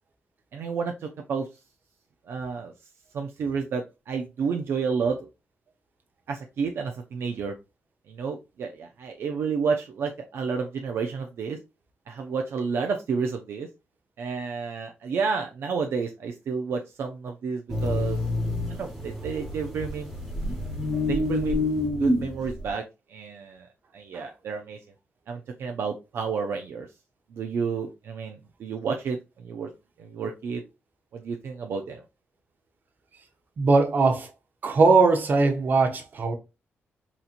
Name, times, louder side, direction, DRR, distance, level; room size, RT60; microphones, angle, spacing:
voice 1, 0.5-1.5 2.3-2.7 3.1-5.3 6.3-7.5 8.1-11.6 12.1-13.7 14.2-18.2 18.7-20.1 20.5-20.6 21.1-21.6 22.0-22.8 23.1-23.7 23.9-24.8 25.3-26.9 27.3-29.7 30.0-30.6 31.1-32.0, right 5 dB, 65° right, 0.5 m, -30 dB
sound 1, 17.7-22.7, left 2 dB, ahead, 1.2 m, -28 dB
voice 2, 33.6-34.3 34.6-36.3, right 3 dB, 45° right, 0.8 m, -20 dB
4.1 x 2.8 x 2.5 m
cardioid pair, 130°, 4 cm